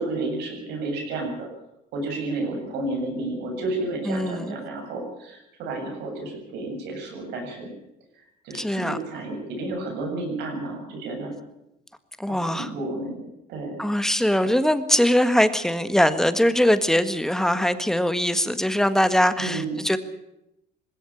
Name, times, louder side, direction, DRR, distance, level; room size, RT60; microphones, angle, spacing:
voice 1, 0.0-1.5 1.9-7.7 8.4-11.3 12.2-13.2 13.5-13.8 19.4-19.7, right 2 dB, 90° right, 1 dB, 7.9 m, -31 dB
voice 2, 4.0-4.5 8.5-9.0 12.2-12.7 13.8-20.0, equal, 5° left, 11 dB, 1.6 m, -22 dB
20.0 x 16.5 x 8.6 m, 0.85 s
cardioid pair, 110°, 17 cm